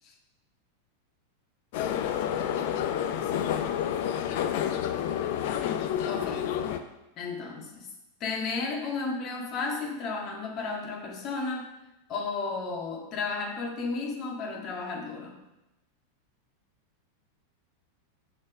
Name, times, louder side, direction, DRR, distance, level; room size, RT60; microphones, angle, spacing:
sound 1, 1.7-6.8, left 9 dB, 50° left, 0.6 m, -29 dB
voice 1, 6.1-6.5 7.2-7.9 8.2-11.7 12.1-15.3, left 4 dB, 35° left, 1 dB, 1.8 m, -33 dB
6.4 x 6.1 x 6.0 m, 0.94 s
figure-of-eight pair, 90°, 0 cm